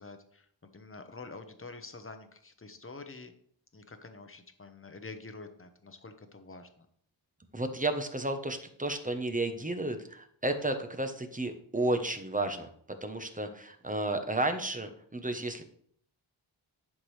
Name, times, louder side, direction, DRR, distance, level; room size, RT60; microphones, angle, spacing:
voice 1, 0.0-3.3 3.7-6.9, left 3 dB, 25° left, 7 dB, 1.0 m, -47 dB
voice 2, 7.5-12.7 13.0-15.6, right 2 dB, 15° right, 7 dB, 1.0 m, -32 dB
11.0 x 6.0 x 3.3 m, 0.63 s
wide cardioid pair, 85°, 49 cm